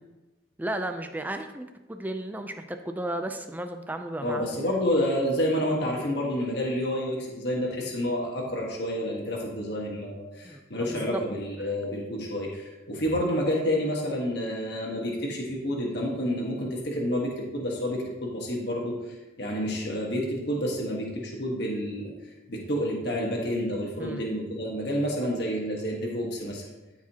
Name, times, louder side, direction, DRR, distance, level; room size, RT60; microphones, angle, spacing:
voice 1, 0.6-4.6 10.4-11.2 11.6-11.7 24.0-24.2, right 1 dB, 10° right, 7 dB, 0.4 m, -34 dB
voice 2, 4.2-22.1 22.5-26.6, equal, 55° left, -2 dB, 1.3 m, -29 dB
13.5 x 4.8 x 2.9 m, 1.1 s
head